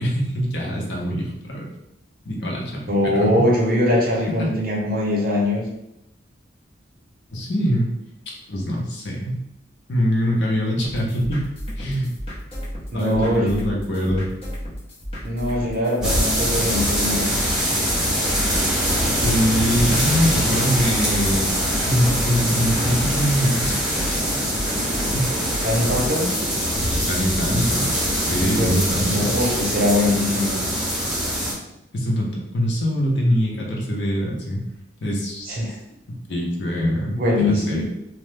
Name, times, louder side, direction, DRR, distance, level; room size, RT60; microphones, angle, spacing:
voice 1, 0.0-1.7 2.2-3.5 4.4-4.5 7.3-7.9 8.3-9.4 9.9-11.5 11.8-12.1 12.9-14.3 19.2-21.5 21.9-24.4 24.7-25.4 27.1-27.9 28.3-29.3 31.9-34.6 35.0-35.6 36.1-37.8, equal, 60° left, -2 dB, 0.7 m, -23 dB
voice 2, 2.9-5.6 12.9-13.6 15.2-17.3 25.6-26.3 28.6-30.6 35.5-35.8 37.0-37.8, left 1 dB, 45° right, -2 dB, 0.7 m, -22 dB
sound 1, 10.8-26.1, equal, 30° left, 0.8 m, -34 dB
sound 2, 16.0-31.5, equal, 5° right, 0.6 m, -23 dB
2.9 x 2.1 x 3.3 m, 0.87 s
head